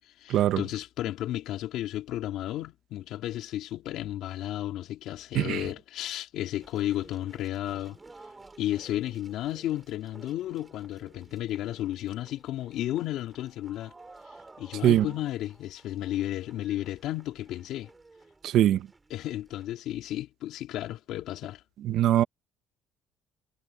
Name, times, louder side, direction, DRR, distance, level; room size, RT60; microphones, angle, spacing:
voice 1, 0.0-8.0 8.6-13.9 14.6-17.9 19.1-21.6, left 13 dB, 60° left, 3.6 m, -33 dB
sound 1, 6.6-19.7, right 3 dB, 10° right, 6.9 m, -54 dB
voice 2, 18.4-18.9 21.8-22.2, right 12 dB, 55° right, 0.9 m, -22 dB
cardioid pair, 170°, 0 cm